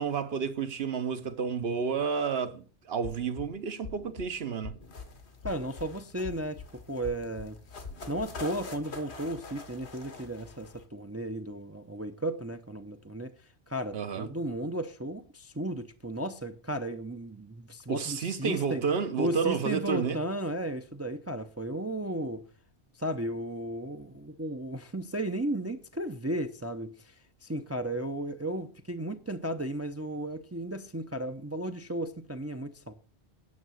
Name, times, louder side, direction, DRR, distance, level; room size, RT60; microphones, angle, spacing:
voice 1, 0.0-4.7 13.9-14.3 17.9-20.2, right 6 dB, 65° right, 1.2 m, -30 dB
sound 1, 3.0-3.5 3.8-4.3 4.6-5.1 5.4-5.9 6.2-6.7 7.0-7.5 7.8-8.3, left 4 dB, 60° left, 1.2 m, -44 dB
sound 2, 4.8-10.9, left 3 dB, 80° left, 1.7 m, -46 dB
voice 2, 5.4-6.6 6.9-7.6 8.1-13.3 13.7-18.8 19.2-22.4 22.9-32.9, right 1 dB, 20° right, 0.5 m, -34 dB
9.5 x 6.6 x 6.3 m
omnidirectional pair, 1.1 m